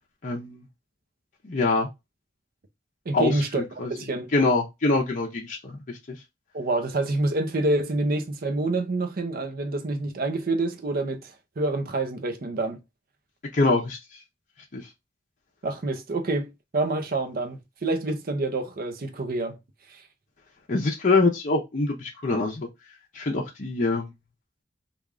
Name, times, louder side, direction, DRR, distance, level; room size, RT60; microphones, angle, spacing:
voice 1, 0.2-0.7 1.4-1.9 3.1-3.9 4.3-6.2 13.5-14.2 14.7-14.9 20.7-22.7 23.1-24.1, left 3 dB, 45° left, 0.6 m, -25 dB
voice 2, 3.1-3.6 3.9-4.3 6.5-12.8 15.6-19.6 19.9-20.0, right 2 dB, 50° right, 0.6 m, -27 dB
3.4 x 2.4 x 3.6 m
head